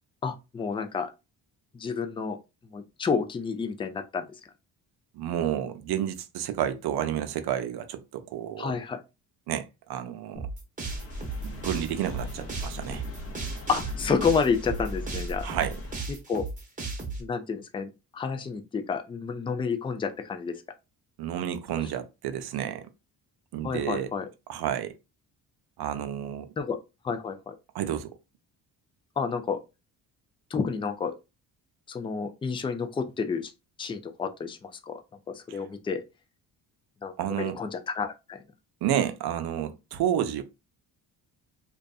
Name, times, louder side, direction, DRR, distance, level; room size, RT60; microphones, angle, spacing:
voice 1, 0.2-1.1 1.7-2.4 2.7-4.2 8.6-9.0 13.7-15.5 16.1-16.4 17.2-20.6 23.6-24.3 26.6-26.8 27.0-27.6 29.2-29.6 30.5-31.2 31.9-33.5 33.8-35.0 35.3-36.0 37.0-38.4, left 5 dB, 15° left, 0.3 m, -30 dB
voice 2, 5.1-8.7 9.5-10.5 11.4-13.0 15.4-16.1 21.2-22.9 23.5-24.1 24.5-25.0 25.8-26.5 27.7-28.1 35.5-35.6 37.2-37.6 38.8-40.4, right 10 dB, 65° right, 0.6 m, -30 dB
sound 1, 10.4-17.2, right 3 dB, 20° right, 0.9 m, -36 dB
sound 2, 10.8-15.9, left 1 dB, 35° left, 0.7 m, -38 dB
2.5 x 2.3 x 2.3 m
cardioid pair, 80°, 41 cm